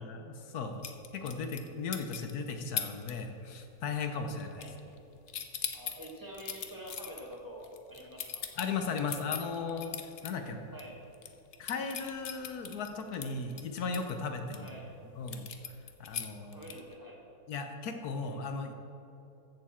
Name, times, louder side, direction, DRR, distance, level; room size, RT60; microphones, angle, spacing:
voice 1, 0.0-4.7 8.6-10.0 10.2-10.6 11.6-14.7 15.2-15.5 16.0-16.6 17.5-18.7, left 4 dB, 65° left, 6 dB, 1.1 m, -36 dB
sound 1, 0.8-2.3 2.8-3.1 3.4-3.7 4.0-5.0 5.3-10.3 10.7-10.8 11.1-14.7 15.3-17.0, left 8 dB, 80° left, 0.6 m, -39 dB
voice 2, 5.7-8.4 10.3-10.9 14.6-15.0 16.5-17.2, right 1 dB, 10° right, -3 dB, 1.4 m, -47 dB
14.5 x 6.9 x 4.3 m, 3.0 s
omnidirectional pair, 2.1 m